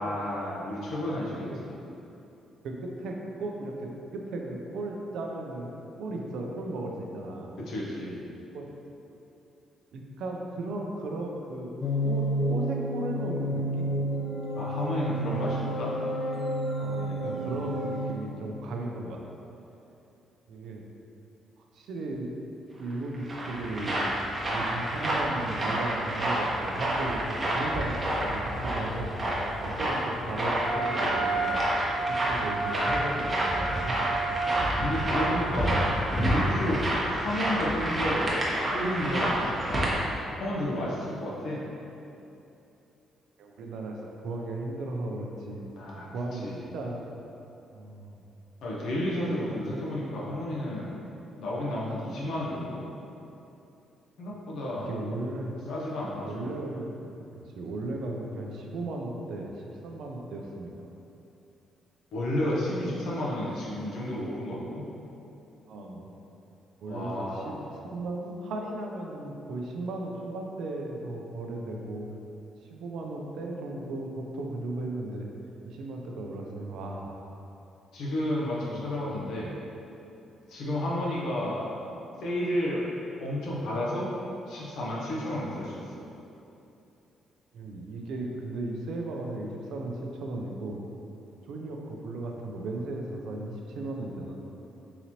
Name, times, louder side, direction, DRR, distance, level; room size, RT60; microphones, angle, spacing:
voice 1, 0.0-1.8 7.7-8.2 14.5-15.9 17.0-17.7 32.4-32.5 34.6-36.0 36.3-36.8 37.1-38.4 38.7-39.8 40.4-41.6 45.8-46.1 46.4-46.6 48.6-51.0 51.4-52.8 54.2-54.9 55.7-56.5 62.1-64.9 66.9-67.7 77.9-79.5 80.5-81.7 82.2-82.8 83.2-84.1 84.5-86.0, left 1 dB, 75° left, -6 dB, 0.7 m, -32 dB
voice 2, 2.6-5.7 6.0-7.5 8.5-8.7 9.9-11.7 12.0-13.9 16.8-19.2 20.5-20.8 21.7-22.3 22.8-24.1 24.4-29.1 29.6-31.7 32.0-34.0 43.4-45.7 46.1-46.5 46.7-47.0 47.7-48.2 54.9-55.6 56.2-57.2 57.5-60.7 62.8-63.2 65.7-66.1 66.8-72.1 72.7-75.3 75.6-77.2 78.7-78.8 79.1-79.5 85.3-85.5 87.5-90.8 91.5-94.4, right 2 dB, 75° right, 1 dB, 0.4 m, -36 dB
sound 1, 11.8-18.1, equal, 35° left, 0.5 m, -30 dB
sound 2, 22.9-39.9, right 1 dB, 30° right, 0.8 m, -29 dB
Wind instrument woodwind instrument, 30.6-35.9, right 3 dB, 10° left, 1.0 m, -32 dB
3.8 x 3.0 x 2.8 m, 2.9 s
cardioid pair, 90°, 0 cm